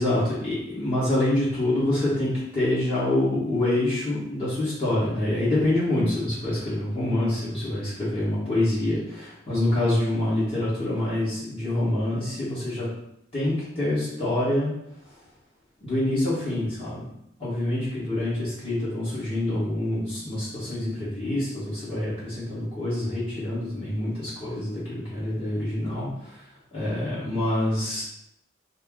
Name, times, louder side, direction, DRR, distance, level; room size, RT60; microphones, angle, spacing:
voice 1, 0.0-12.9 13.3-15.3 15.8-17.1 17.4-28.0, left 1 dB, 30° left, -10 dB, 1.4 m, -26 dB
4.4 x 2.1 x 3.6 m, 0.79 s
head